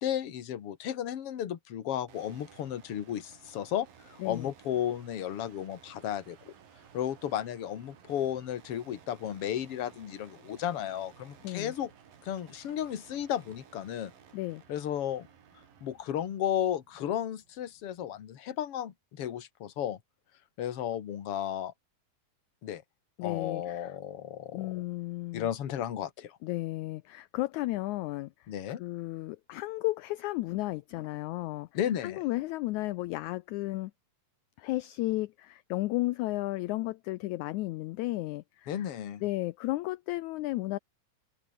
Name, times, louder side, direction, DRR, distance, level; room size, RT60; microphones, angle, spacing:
voice 1, 0.0-6.5 6.9-11.9 12.2-14.1 14.7-15.3 15.8-20.0 20.6-21.7 22.6-22.8 23.2-24.8 25.3-26.4 28.5-28.8 31.7-32.2 38.7-39.2, left 10 dB, 50° left, 2.3 m, -34 dB
sound 1, 2.1-18.1, right 7 dB, 85° right, 4.8 m, -57 dB
voice 2, 11.4-11.7 14.3-14.6 23.2-23.9 24.5-25.5 26.4-28.3 28.8-31.7 32.0-33.9 34.6-38.9 39.2-40.8, left 18 dB, 80° left, 1.7 m, -33 dB
open air
omnidirectional pair, 3.9 m